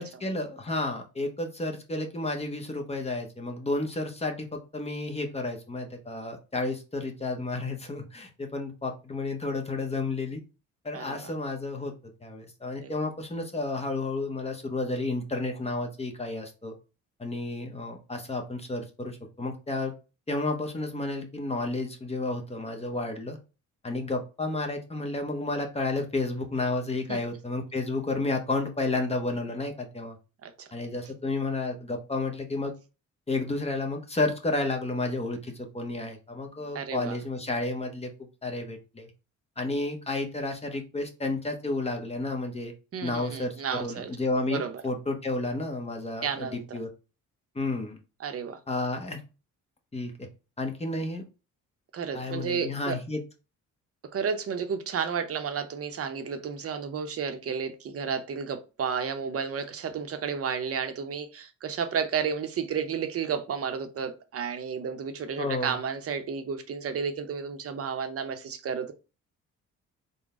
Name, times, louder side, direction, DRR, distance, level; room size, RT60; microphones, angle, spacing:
voice 1, 0.0-10.4 10.8-11.9 12.2-16.7 17.2-19.9 20.3-23.4 23.8-30.2 30.7-32.7 33.3-38.1 38.4-39.1 39.6-42.7 43.0-46.9 47.5-48.0 48.7-49.2 49.9-50.3 50.6-51.2 52.1-53.2 65.4-65.8, left 2 dB, 20° left, 0.9 m, -31 dB
voice 2, 10.9-11.3 12.8-12.9 27.1-27.2 30.4-30.7 36.7-37.2 42.9-44.1 44.5-44.8 46.2-46.8 48.2-48.6 51.9-53.0 54.1-68.9, right 6 dB, 50° right, 0.7 m, -32 dB
3.8 x 2.2 x 3.6 m
cardioid pair, 90°, 30 cm